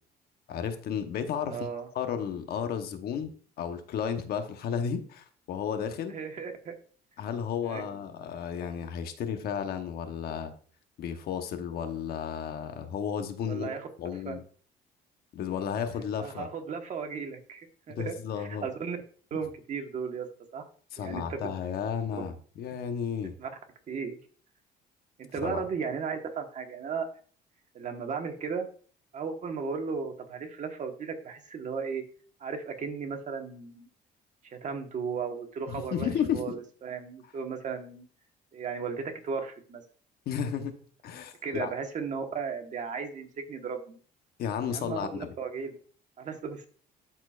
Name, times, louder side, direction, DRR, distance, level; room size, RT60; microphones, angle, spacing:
voice 1, 0.5-1.6 1.9-3.3 3.6-6.1 7.2-10.5 11.0-14.4 15.3-16.5 18.0-18.7 20.9-23.3 25.4-25.6 35.7-36.5 40.3-40.7 41.0-41.7 44.4-45.3, left 7 dB, 65° left, 7 dB, 1.0 m, -33 dB
voice 2, 1.4-1.9 6.1-6.7 7.6-7.9 13.4-13.9 14.2-14.4 16.2-19.0 19.3-20.3 20.5-20.7 21.0-21.5 22.1-22.2 23.4-23.5 23.9-24.2 25.2-27.1 27.7-28.7 29.1-32.0 32.4-33.9 34.4-36.1 36.3-38.1 38.5-39.8 41.4-44.0 44.7-45.8 46.2-46.7, right 5 dB, 45° right, 5 dB, 1.3 m, -35 dB
12.5 x 4.4 x 2.5 m, 0.44 s
cardioid pair, 110°, 17 cm